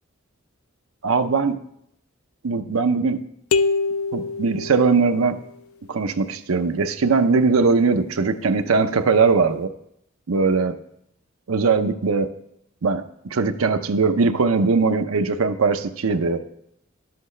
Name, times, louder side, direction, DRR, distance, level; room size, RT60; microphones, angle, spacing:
voice 1, 1.0-1.6 2.4-3.2 4.1-5.4 5.9-9.7 10.3-10.7 11.5-12.3 12.8-13.0 13.3-16.4, right 4 dB, 85° right, 8 dB, 0.6 m, -20 dB
sound 1, 3.5-5.4, left 4 dB, 75° left, 0.4 m, -24 dB
11.0 x 7.8 x 3.2 m, 0.75 s
head